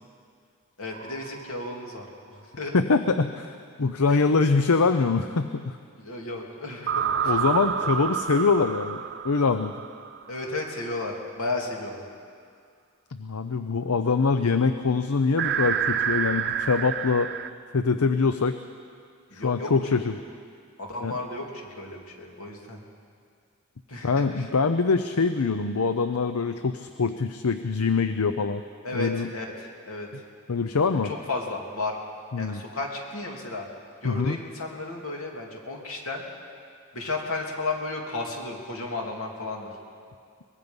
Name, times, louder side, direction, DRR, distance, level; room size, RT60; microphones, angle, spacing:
voice 1, 0.8-2.8 4.1-4.2 6.0-7.3 7.8-8.0 10.3-12.0 19.3-19.7 20.1-20.2 20.8-22.8 23.9-24.5 28.8-30.2 31.0-32.0 32.4-33.7 34.0-36.2 36.9-39.7, left 2 dB, 75° left, 0 dB, 3.0 m, -34 dB
sound 1, 0.9-1.7 6.9-10.5 15.4-17.5, right 8 dB, 50° right, 0.7 m, -28 dB
voice 2, 2.7-5.8 7.2-9.8 13.2-17.3 17.7-18.5 19.3-20.2 21.0-21.2 24.0-28.6 28.9-29.3 30.5-31.1 32.3-32.6 34.0-34.4, left 4 dB, 90° left, 9 dB, 0.7 m, -24 dB
23.5 x 20.5 x 5.4 m, 2.2 s
head